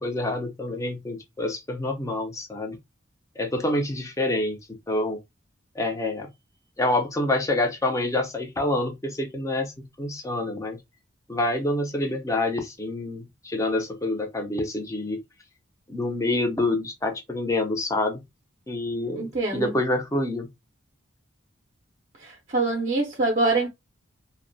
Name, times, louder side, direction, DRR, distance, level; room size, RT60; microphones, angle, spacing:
voice 1, 0.0-2.8 3.4-5.2 5.7-6.3 6.8-10.8 11.3-15.2 15.9-18.2 18.7-20.5, left 2 dB, 15° left, 0.4 m, -27 dB
voice 2, 19.2-19.7 22.2-23.7, right 2 dB, 35° right, 0.5 m, -25 dB
2.5 x 2.1 x 2.5 m
head